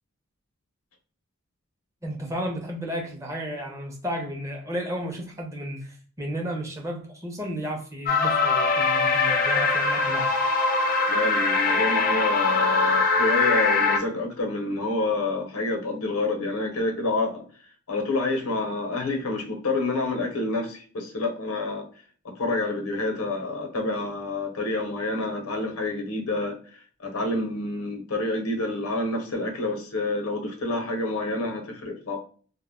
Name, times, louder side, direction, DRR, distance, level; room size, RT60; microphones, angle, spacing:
voice 1, 2.0-10.3, equal, 15° right, 0.5 m, -33 dB
sound 1, 8.1-14.0, left 3 dB, 40° left, 0.4 m, -22 dB
voice 2, 11.1-17.4 17.9-21.9 22.2-26.6 27.0-32.2, left 2 dB, 90° left, 0.7 m, -28 dB
2.1 x 2.1 x 3.5 m
head